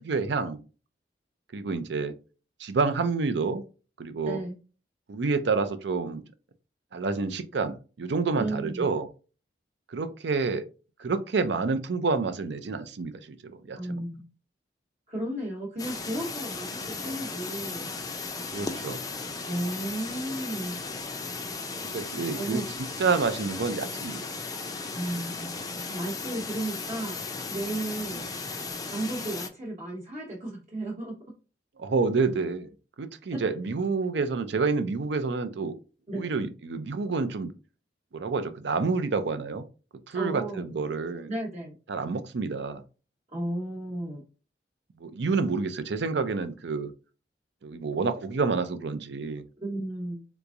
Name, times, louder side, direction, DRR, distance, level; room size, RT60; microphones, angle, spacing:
voice 1, 0.1-0.6 1.5-2.1 2.6-3.6 4.0-4.4 5.1-6.2 6.9-9.1 9.9-10.7 11.0-14.0 18.5-19.0 21.9-22.6 23.0-24.2 31.8-32.7 33.0-35.7 36.1-37.5 38.1-39.6 40.1-41.3 41.9-42.8 45.0-46.9 47.6-49.4, right 4 dB, 75° right, 10 dB, 0.5 m, -28 dB
voice 2, 8.4-8.8 13.7-14.2 15.1-17.9 19.4-21.0 22.3-22.7 24.9-27.2 27.5-28.2 28.9-31.2 33.3-33.4 36.1-36.3 40.1-40.7 41.3-41.7 43.3-44.2 49.6-50.2, right 1 dB, 40° right, -3 dB, 0.9 m, -34 dB
sound 1, 15.8-29.5, left 4 dB, 20° left, 0.4 m, -36 dB
3.4 x 2.9 x 2.5 m, 0.34 s
head